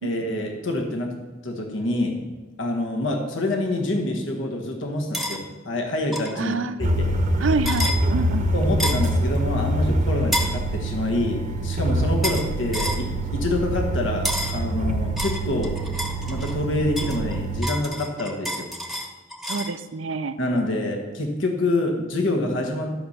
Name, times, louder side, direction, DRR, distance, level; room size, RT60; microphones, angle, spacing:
voice 1, 0.0-1.1 1.4-2.2 2.6-7.1 8.5-15.8 16.3-18.7 20.4-22.9, left 1 dB, 70° left, 2 dB, 1.5 m, -26 dB
sound 1, 5.1-5.4 6.1-6.3 7.6-8.0 8.8-9.1 10.3-10.6 12.2-12.5 12.7-13.0 14.2-14.6 15.2-16.6 17.0-19.7, equal, ahead, 1.0 m, -29 dB
voice 2, 6.4-6.9 7.4-8.5 19.5-20.3, right 4 dB, 75° right, 11 dB, 0.6 m, -27 dB
sound 2, 6.8-17.6, right 1 dB, 40° right, 0.9 m, -25 dB
11.5 x 5.6 x 6.6 m, 1.3 s
head